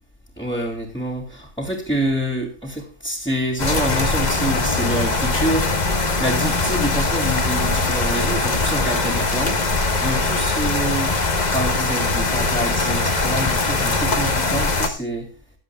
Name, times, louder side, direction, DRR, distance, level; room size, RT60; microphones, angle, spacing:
voice 1, 0.4-9.6 10.0-11.2 11.5-15.3, right 1 dB, 5° left, -3 dB, 2.6 m, -26 dB
sound 1, 3.6-14.9, left 3 dB, 35° left, 1.4 m, -21 dB
22.0 x 8.1 x 2.3 m, 0.35 s
omnidirectional pair, 1.3 m